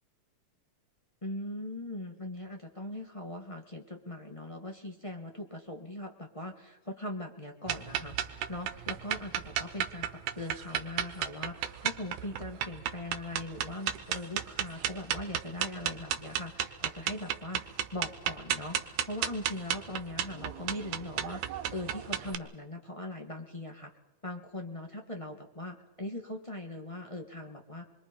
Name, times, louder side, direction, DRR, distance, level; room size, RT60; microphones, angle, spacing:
voice 1, 1.2-23.9 24.2-27.8, left 1 dB, 15° left, 1 dB, 1.0 m, -40 dB
sound 1, 7.7-22.3, right 10 dB, 85° right, 2.5 m, -33 dB
28.0 x 22.0 x 5.3 m, 1.0 s
omnidirectional pair, 3.4 m